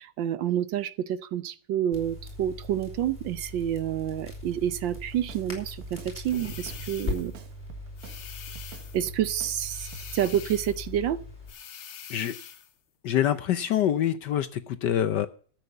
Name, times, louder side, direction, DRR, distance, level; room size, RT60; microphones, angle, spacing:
voice 1, 0.0-7.3 8.9-11.2, right 10 dB, 70° right, 1.3 m, -29 dB
Crackle, 1.9-11.5, left 2 dB, 25° left, 5.1 m, -40 dB
Drum kit, 5.0-5.5 5.8-6.9 7.2-8.2 8.6-9.6 9.9-10.1, right 10 dB, 85° right, 2.2 m, -47 dB
sound 1, 6.2-7.4 8.0-9.1 9.7-10.9 11.5-12.7, left 9 dB, 85° left, 2.2 m, -44 dB
voice 2, 13.0-15.3, left 10 dB, 65° left, 1.2 m, -25 dB
13.5 x 8.1 x 6.8 m
omnidirectional pair, 2.3 m